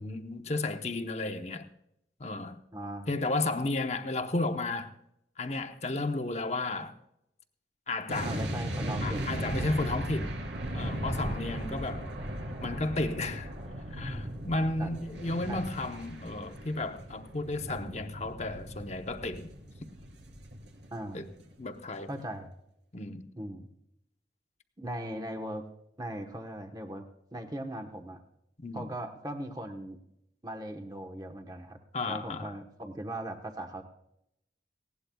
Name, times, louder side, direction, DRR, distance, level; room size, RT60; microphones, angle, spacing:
voice 1, 0.0-1.7 2.2-2.6 3.1-4.9 5.4-6.9 7.9-8.4 9.0-10.3 10.7-12.1 12.6-13.5 13.9-19.5 21.1-21.3 21.6-22.1 22.9-23.3 28.6-28.8 31.9-32.5, left 2 dB, 40° left, 0.9 m, -33 dB
voice 2, 2.7-3.1 8.2-9.3 9.5-9.7 14.8-14.9 15.5-15.6 20.9-21.3 22.1-22.5 23.4-23.7 24.8-25.6 26.0-27.0 27.3-28.2 28.7-30.0 30.4-31.8 32.0-33.8, right 1 dB, 20° right, 1.1 m, -39 dB
sound 1, 8.1-21.2 21.5-21.7, equal, 85° right, 3.3 m, -37 dB
19.5 x 17.5 x 2.3 m
head